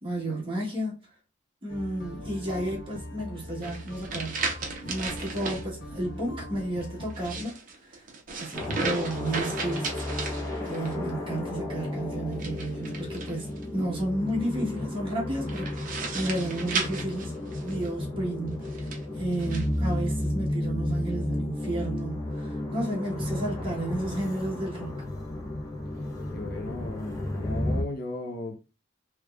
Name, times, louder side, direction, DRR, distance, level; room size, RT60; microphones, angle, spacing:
voice 1, 0.0-1.0 1.6-7.6 7.9-8.0 8.4-10.1 10.7-13.5 13.7-17.3 17.6-24.9, right 1 dB, 30° right, 1.3 m, -32 dB
sound 1, 1.7-7.4, left 1 dB, 75° left, 1.1 m, -41 dB
sound 2, 3.6-5.6 7.1-11.0 12.3-13.6 15.5-17.9 18.6-19.7, right 4 dB, 45° right, 0.7 m, -35 dB
sound 3, 8.5-27.8, left 1 dB, 20° left, 0.8 m, -33 dB
voice 2, 26.3-28.6, left 2 dB, 55° left, 0.6 m, -36 dB
3.4 x 3.0 x 2.4 m
head